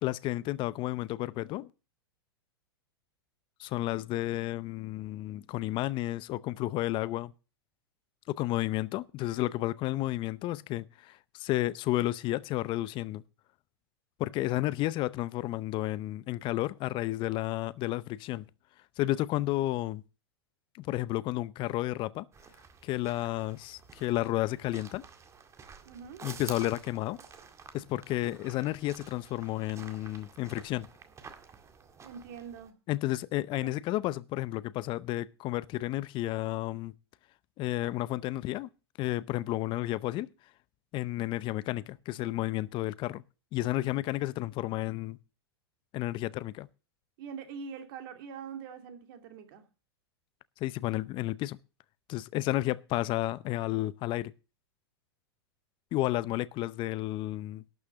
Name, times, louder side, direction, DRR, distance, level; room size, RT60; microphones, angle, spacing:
voice 1, 0.0-1.7 3.6-7.3 8.3-13.2 14.2-18.4 19.0-20.0 20.8-22.3 22.8-25.0 26.2-27.2 27.7-30.9 32.9-36.9 37.6-38.7 39.0-40.3 40.9-43.2 43.5-45.2 45.9-46.7 50.6-51.6 52.1-54.3 55.9-57.6, left 16 dB, 40° left, 0.6 m, -32 dB
sound 1, 22.3-32.7, right 6 dB, 20° right, 1.8 m, -50 dB
voice 2, 25.8-26.2 32.0-32.7 33.6-33.7 47.2-49.6, right 6 dB, 55° right, 2.7 m, -43 dB
12.0 x 6.3 x 6.8 m
hypercardioid pair, 105°, 14 cm